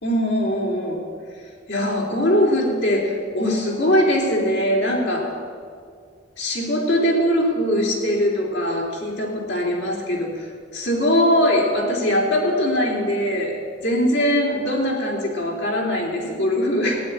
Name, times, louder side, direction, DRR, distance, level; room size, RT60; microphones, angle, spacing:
voice 1, 0.0-1.1 1.7-5.3 6.4-10.5 10.7-17.0, equal, 60° left, -2 dB, 3.5 m, -21 dB
15.5 x 10.0 x 9.0 m, 2.2 s
head